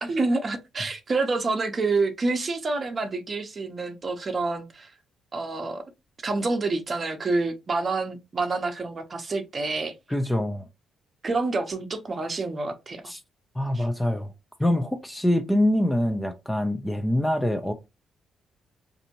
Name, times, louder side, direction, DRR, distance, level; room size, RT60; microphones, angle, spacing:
voice 1, 0.0-4.9 5.3-5.8 6.2-9.9 11.2-13.0 13.7-13.9, right 3 dB, 35° right, 0.7 m, -27 dB
voice 2, 10.1-10.7 13.1-13.2 13.6-14.3 14.6-17.7, left 1 dB, 5° left, 0.5 m, -24 dB
4.1 x 2.6 x 2.8 m
cardioid pair, 90°, 0 cm